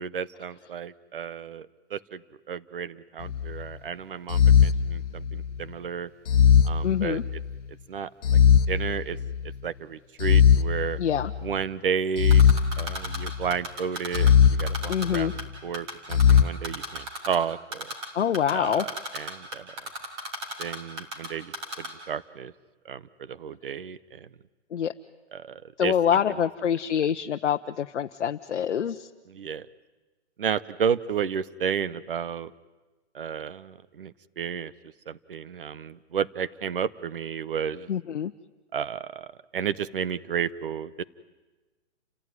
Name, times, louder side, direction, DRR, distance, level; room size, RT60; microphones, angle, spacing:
voice 1, 0.0-6.1 6.6-7.4 7.9-8.1 8.7-9.2 9.6-11.0 11.4-12.5 12.8-17.9 18.5-19.7 20.6-22.5 22.8-24.3 25.3-25.9 29.3-29.7 30.4-32.5 33.1-34.7 35.1-37.9 38.7-41.0, right 7 dB, 50° right, 17 dB, 0.9 m, -32 dB
sound 1, 3.2-3.6 4.3-5.6 6.3-7.5 8.2-9.5 10.2-11.5 12.2-13.5 14.1-15.4 16.1-16.4, left 8 dB, 85° left, 1.2 m, -20 dB
voice 2, 6.8-7.2 11.0-11.3 14.9-15.3 18.1-18.9 24.7-24.9 25.8-29.1 37.9-38.3, left 8 dB, 70° left, 5 dB, 0.9 m, -25 dB
Typing, 12.3-14.3 14.6-15.4 15.7-17.3 17.7-18.1 18.3-21.3 21.5-21.9, right 1 dB, 20° right, 3.3 m, -33 dB
29.5 x 16.0 x 9.6 m, 1.2 s
hypercardioid pair, 180°, 35 cm